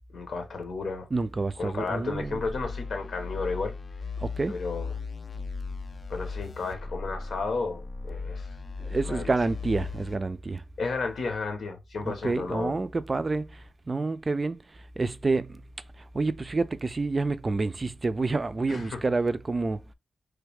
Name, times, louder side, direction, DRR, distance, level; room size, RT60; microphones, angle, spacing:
voice 1, 0.1-1.1 1.6-3.7 4.5-5.0 6.1-8.5 9.0-9.3 10.8-12.8 18.7-19.0, left 4 dB, 85° left, 1.1 m, -33 dB
voice 2, 1.1-2.4 4.2-4.6 8.8-10.6 12.1-14.6 15.0-15.6 16.1-19.8, right 3 dB, 35° right, 0.3 m, -28 dB
sound 1, 2.1-10.2, left 4 dB, 50° left, 0.4 m, -37 dB
3.3 x 2.3 x 3.4 m
wide cardioid pair, 90°, 0 cm